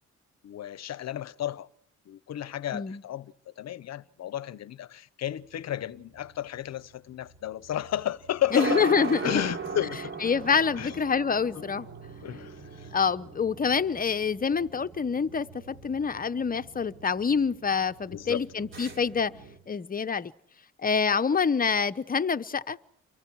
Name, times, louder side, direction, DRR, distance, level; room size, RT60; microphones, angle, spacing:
voice 1, 0.4-1.7 2.1-8.8 9.2-10.1 10.7-11.0 11.5-11.7 12.2-12.9 18.1-18.4, left 11 dB, 60° left, 0.9 m, -33 dB
sound 1, 5.5-19.6, right 3 dB, 40° right, 4.1 m, -39 dB
voice 2, 8.5-9.4 10.2-11.9 12.9-19.3 19.7-20.3 20.8-22.8, left 6 dB, 30° left, 0.9 m, -26 dB
29.0 x 23.5 x 4.7 m
cardioid pair, 90°, 30 cm